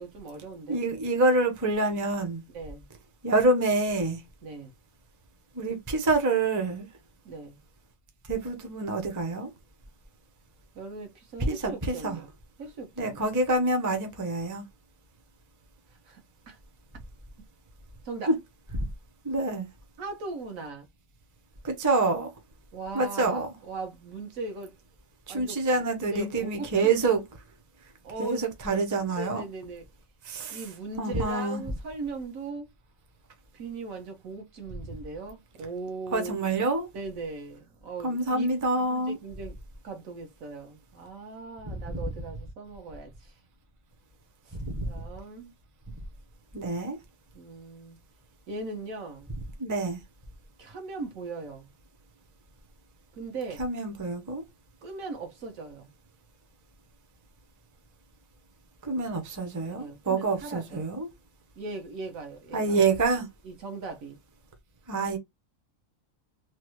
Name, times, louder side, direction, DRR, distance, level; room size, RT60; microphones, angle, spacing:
voice 1, 0.0-0.8 2.5-2.8 4.4-4.7 7.2-7.6 10.7-12.3 12.6-13.2 16.1-16.6 18.0-18.3 20.0-20.9 22.7-24.7 25.3-25.6 26.0-27.1 28.0-28.5 29.2-29.8 30.5-32.7 33.5-36.5 36.9-38.5 38.8-39.5 39.8-43.3 44.4-44.6 44.9-45.5 47.3-48.0 48.5-49.3 50.6-51.7 53.1-53.6 54.8-55.9 59.8-60.9 61.6-62.8 63.4-64.2, right 3 dB, 75° right, 1.3 m, -39 dB
voice 2, 0.7-2.4 3.2-4.2 5.5-6.9 8.3-9.5 11.5-12.2 13.0-14.6 18.3-18.4 18.7-18.9 19.2-19.7 21.6-22.3 22.9-23.5 25.3-27.2 28.2-29.4 30.2-30.6 31.0-31.6 36.1-36.9 38.0-39.2 41.6-42.0 44.5-44.9 46.5-47.0 49.6-50.0 53.6-54.4 58.8-61.1 62.5-63.3 64.9-65.2, right 3 dB, 20° right, 0.5 m, -27 dB
3.1 x 2.3 x 3.0 m
omnidirectional pair, 1.4 m